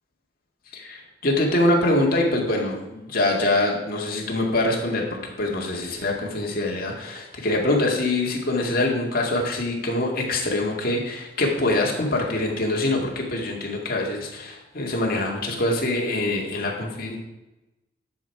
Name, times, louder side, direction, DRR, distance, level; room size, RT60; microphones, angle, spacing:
voice 1, 0.7-5.0 5.4-17.2, left 2 dB, 45° left, 0 dB, 2.2 m, -24 dB
12.0 x 7.1 x 4.7 m, 1.0 s
head